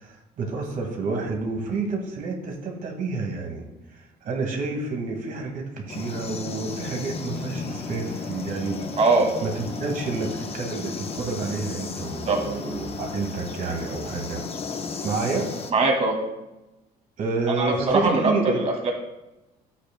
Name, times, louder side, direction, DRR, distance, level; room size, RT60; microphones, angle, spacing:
voice 1, 0.0-8.8 9.4-14.4 15.0-15.5 17.2-18.7, right 4 dB, 55° right, 1 dB, 1.9 m, -29 dB
sound 1, 5.9-15.7, left 4 dB, 35° left, 0.9 m, -34 dB
voice 2, 9.0-9.3 12.3-12.4 15.7-16.2 17.6-18.3 18.9-19.0, right 3 dB, 40° right, 1 dB, 1.9 m, -20 dB
11.5 x 8.2 x 2.2 m, 0.97 s
cardioid pair, 110°, 17 cm